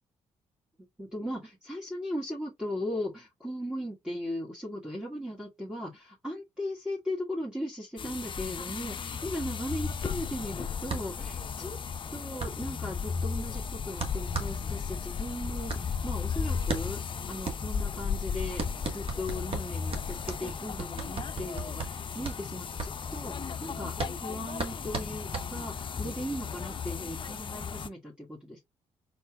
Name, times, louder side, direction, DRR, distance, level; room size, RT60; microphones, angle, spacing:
voice 1, 0.8-11.8 12.1-28.6, left 1 dB, 5° right, 1.6 m, -38 dB
sound 1, 8.0-27.9, left 6 dB, 40° left, 0.5 m, -35 dB
sound 2, 10.9-26.0, right 4 dB, 45° right, 1.5 m, -38 dB
4.3 x 4.2 x 2.3 m
supercardioid pair, 55°, 13 cm